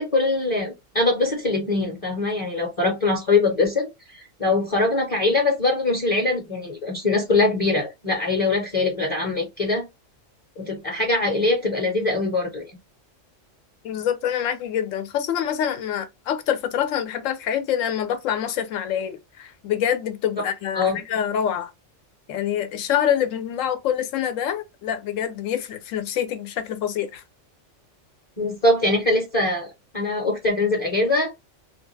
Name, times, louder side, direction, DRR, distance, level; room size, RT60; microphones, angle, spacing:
voice 1, 0.0-3.9 4.1-9.9 10.6-12.6 20.8-21.0 28.4-29.7 29.9-31.3, left 2 dB, 35° left, 0.8 m, -22 dB
voice 2, 13.8-21.7 22.3-27.2, left 9 dB, 80° left, 1.0 m, -26 dB
2.4 x 2.3 x 3.1 m
omnidirectional pair, 1.3 m